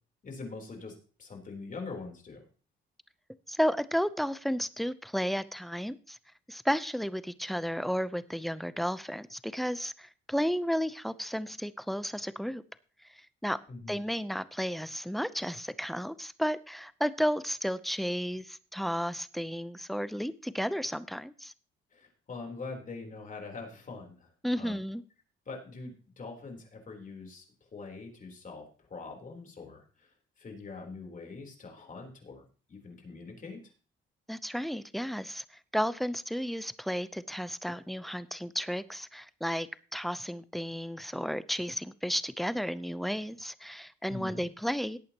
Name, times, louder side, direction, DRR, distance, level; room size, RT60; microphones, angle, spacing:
voice 1, 0.2-2.4 13.7-14.0 21.9-24.3 24.5-24.8 25.5-32.4 32.7-33.7 44.1-44.4, left 3 dB, 40° left, 2 dB, 3.8 m, -43 dB
voice 2, 3.5-6.2 6.5-12.6 13.1-13.6 13.9-21.5 24.4-25.0 34.3-35.4 35.7-45.0, equal, ahead, 15 dB, 0.7 m, -33 dB
17.5 x 8.6 x 3.0 m, 0.38 s
cardioid pair, 90°, 20 cm